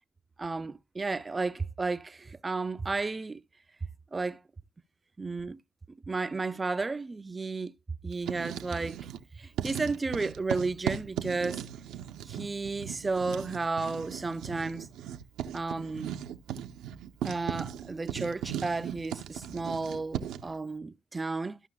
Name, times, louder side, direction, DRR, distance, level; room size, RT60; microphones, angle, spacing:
voice 1, 0.4-3.4 4.1-4.4 5.2-5.6 5.9-7.7 8.0-9.0 9.3-11.6 12.3-14.9 15.5-16.2 17.2-21.6, right 3 dB, 25° right, 0.4 m, -33 dB
Writing, 8.1-9.2 9.5-20.5, right 10 dB, 85° right, 0.6 m, -38 dB
13.5 x 5.6 x 2.3 m
cardioid pair, 90°, 0 cm